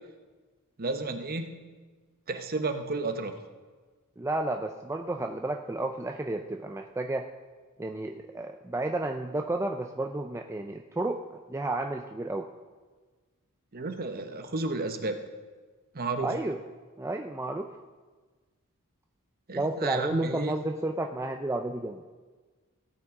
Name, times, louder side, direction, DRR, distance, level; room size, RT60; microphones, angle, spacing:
voice 1, 0.8-1.5 2.3-3.3 13.7-15.2 15.9-16.3 19.5-20.5, right 3 dB, 40° right, 7 dB, 0.9 m, -32 dB
voice 2, 4.2-7.3 7.8-11.2 11.5-12.5 16.2-16.6 17.0-17.7 19.5-22.0, right 2 dB, 10° right, 4 dB, 0.4 m, -31 dB
16.5 x 8.8 x 3.7 m, 1.4 s
head